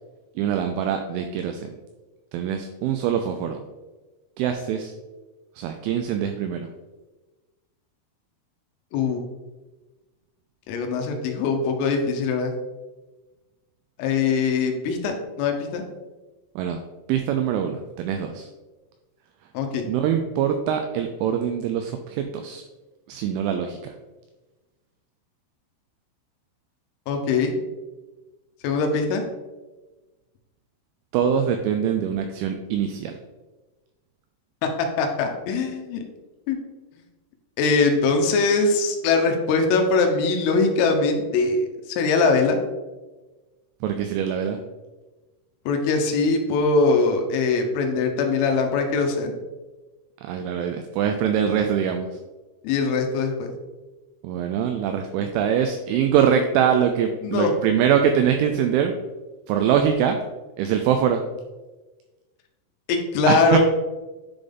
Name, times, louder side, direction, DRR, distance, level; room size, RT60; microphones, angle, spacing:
voice 1, 0.4-1.7 2.3-3.6 4.4-4.9 5.6-6.7 16.6-16.8 17.1-18.5 19.8-22.6 23.1-23.9 31.1-33.2 43.8-44.6 50.2-52.1 54.2-58.9 59.5-60.2 60.6-61.2 63.3-63.6, right 8 dB, 85° right, 6 dB, 2.7 m, -23 dB
voice 2, 10.7-12.5 14.0-15.8 19.5-19.9 27.1-27.5 28.6-29.2 35.0-36.0 36.5-36.6 37.6-42.6 45.7-49.4 52.6-53.5 57.2-57.5 62.9-63.6, left 4 dB, 80° left, 3 dB, 3.3 m, -22 dB
10.5 x 3.8 x 3.5 m, 1.2 s
omnidirectional pair, 6.0 m